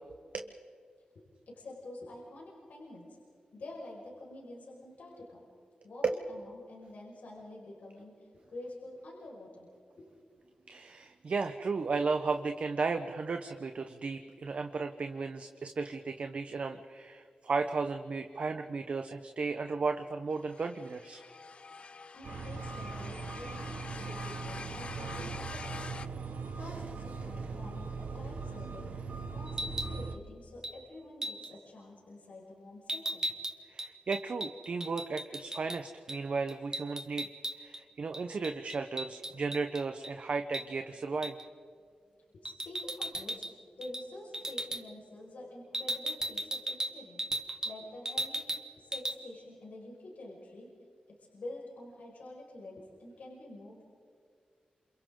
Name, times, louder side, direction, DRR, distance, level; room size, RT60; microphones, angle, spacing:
voice 1, 1.1-3.1 3.5-5.4 5.8-9.7 10.0-10.1 22.1-25.7 26.2-28.9 29.3-33.2 42.3-43.5 43.8-47.2 47.6-48.4 48.8-50.7 51.3-53.9, left 1 dB, 80° left, -4 dB, 5.5 m, -48 dB
voice 2, 10.7-21.2 33.7-37.3 37.6-41.4, right 4 dB, 55° right, 6 dB, 0.9 m, -34 dB
sound 1, 20.3-26.1, left 4 dB, 45° left, 0.6 m, -46 dB
sound 2, 22.2-30.2, right 4 dB, 70° right, 1.5 m, -40 dB
sound 3, 29.5-30.0 30.6-30.8 31.2-31.5 32.9-35.8 36.1-36.2 36.5-37.8 38.1-40.1 40.5-40.7 41.2-41.4 42.4-43.5 43.8-44.1 44.3-44.8 45.7-47.8 48.0-48.6 48.9-49.2, right 1 dB, 25° right, 1.4 m, -36 dB
28.5 x 27.0 x 3.8 m, 2.2 s
wide cardioid pair, 145°, 3 cm